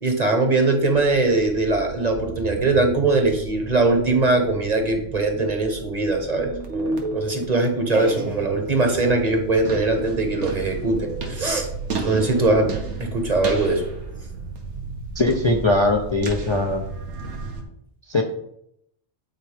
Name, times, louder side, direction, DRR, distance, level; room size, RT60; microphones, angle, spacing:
voice 1, 0.0-11.7 12.0-12.7 13.0-13.8, right 2 dB, 35° right, 4 dB, 1.1 m, -21 dB
sound 1, 0.8-17.6, right 4 dB, 85° right, 1.4 m, -33 dB
voice 2, 15.1-16.8 18.1-18.2, left 2 dB, 35° left, 1 dB, 0.5 m, -20 dB
9.1 x 4.4 x 3.5 m, 0.74 s
omnidirectional pair, 1.2 m